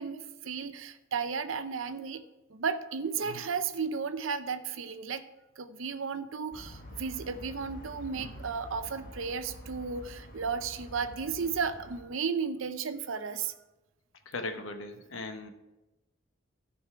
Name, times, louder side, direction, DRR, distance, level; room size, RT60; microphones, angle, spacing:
voice 1, 0.0-2.2 2.5-5.2 5.6-13.5, right 5 dB, 75° right, 11 dB, 0.6 m, -34 dB
sound 1, 6.5-12.0, left 1 dB, 45° left, 1.3 m, -47 dB
voice 2, 14.3-15.5, left 2 dB, 75° left, 6 dB, 1.0 m, -38 dB
13.5 x 5.3 x 4.7 m, 1.0 s
head